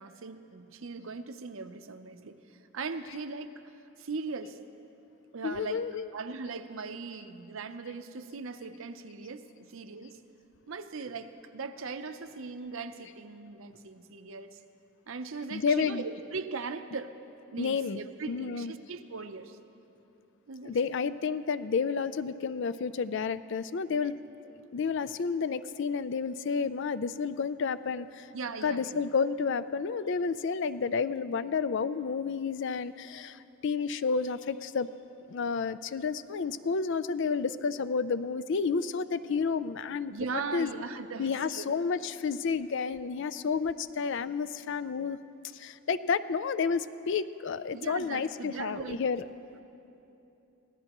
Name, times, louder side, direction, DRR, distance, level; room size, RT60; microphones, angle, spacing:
voice 1, 0.0-2.4 2.7-3.5 4.0-4.6 5.3-5.8 6.1-10.2 10.7-14.6 15.1-17.1 17.5-19.6 20.5-20.8 28.3-29.0 40.1-41.8 47.7-49.0, right 4 dB, 65° right, 9 dB, 0.7 m, -39 dB
voice 2, 5.4-6.1 15.5-16.0 17.6-18.0 18.3-18.7 20.6-24.1 24.7-28.3 28.6-34.9 35.3-40.7 41.2-45.2 45.5-49.3, left 5 dB, 60° left, 14 dB, 0.4 m, -31 dB
25.0 x 17.0 x 3.0 m, 2.8 s
head